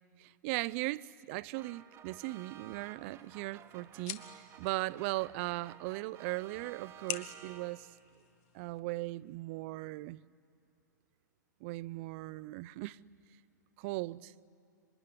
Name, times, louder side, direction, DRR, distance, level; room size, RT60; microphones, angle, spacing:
voice 1, 0.2-7.9 8.5-10.2 11.6-13.0 13.8-14.3, right 20 dB, 40° right, 0.6 m, -38 dB
sound 1, 1.5-8.1, right 9 dB, 25° right, 1.2 m, -54 dB
sound 2, 2.8-8.8, left 11 dB, 45° left, 1.4 m, -48 dB
26.0 x 23.0 x 9.9 m
hypercardioid pair, 115°, 10 cm